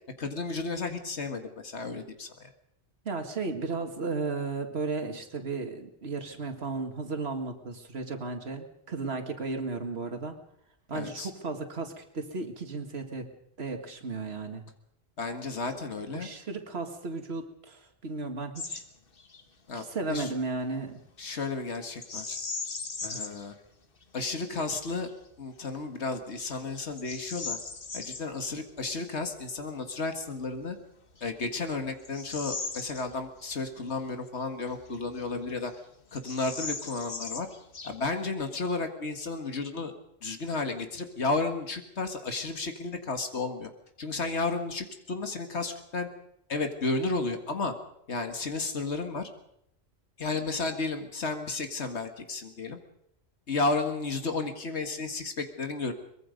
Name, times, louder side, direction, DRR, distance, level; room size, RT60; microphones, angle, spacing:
voice 1, 0.2-2.5 10.9-11.3 15.2-16.3 19.7-20.3 21.2-22.4 23.0-23.5 24.1-25.1 25.4-27.6 27.9-30.8 31.2-35.7 36.1-37.5 37.8-39.9 40.2-43.7 44.0-46.1 46.5-47.7 48.1-49.3 50.2-52.8 53.5-55.9, left 3 dB, 85° left, 6 dB, 2.1 m, -33 dB
voice 2, 3.1-10.4 10.9-13.3 13.6-14.7 16.1-18.8 19.7-21.0, right 3 dB, 70° right, 5 dB, 2.2 m, -34 dB
Bird vocalization bird call bird song, 18.6-18.9 19.2-19.4 22.0-23.5 24.0-24.1 24.7-25.1 25.7-25.8 26.4-28.3 30.4-30.5 31.1-33.5 33.9-34.0 34.7-35.5 35.7-35.8 36.1-38.2, left 4 dB, 55° left, 1.7 m, -38 dB
23.5 x 21.5 x 5.2 m, 0.76 s
omnidirectional pair, 1.1 m